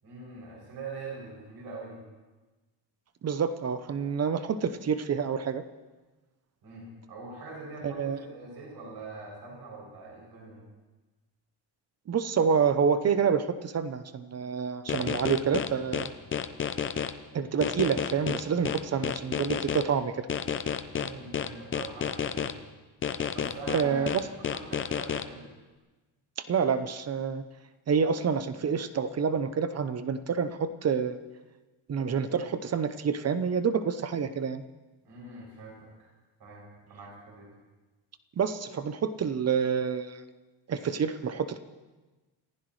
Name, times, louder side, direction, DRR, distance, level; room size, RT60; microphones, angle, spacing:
voice 1, 0.0-2.0 6.6-10.6 20.9-22.6 23.3-24.1 24.5-25.5 35.0-35.9 36.4-37.5, right 3 dB, 50° right, -3 dB, 7.3 m, -43 dB
voice 2, 3.2-5.6 7.8-8.2 12.1-16.1 17.3-20.3 23.7-24.2 26.5-27.4 27.9-31.2 31.9-34.6 38.4-40.2 40.7-41.6, right 6 dB, 30° right, 11 dB, 0.7 m, -28 dB
sound 1, 14.9-17.1 17.6-19.8 20.3-22.5 23.0-25.2, left 7 dB, 25° left, 0.5 m, -30 dB
29.5 x 15.5 x 3.2 m, 1.2 s
cardioid pair, 180°, 48 cm